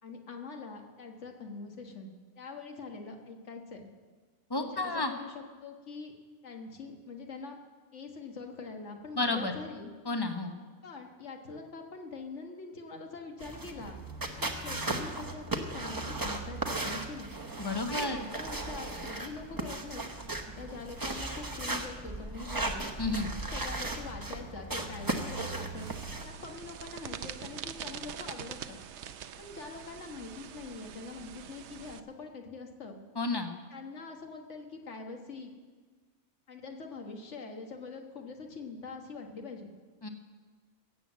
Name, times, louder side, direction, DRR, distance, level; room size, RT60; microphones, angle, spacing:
voice 1, 0.0-2.1 2.4-3.9 4.6-6.1 6.4-7.6 7.9-9.9 10.8-14.0 14.4-17.3 17.9-20.1 20.4-22.9 23.5-25.9 26.2-28.8 29.4-33.0 33.7-35.5 36.5-39.7, left 4 dB, 55° left, 3 dB, 1.8 m, -44 dB
voice 2, 4.5-5.1 9.2-9.5 10.1-10.5 17.6-18.2 23.0-23.3 33.2-33.5 40.0-40.1, left 2 dB, 20° left, 5 dB, 1.0 m, -31 dB
sound 1, 13.4-26.2, right 2 dB, 15° right, 0.9 m, -36 dB
sound 2, 25.7-32.0, right 9 dB, 60° right, 0.8 m, -44 dB
17.0 x 7.7 x 7.3 m, 1.4 s
omnidirectional pair, 1.5 m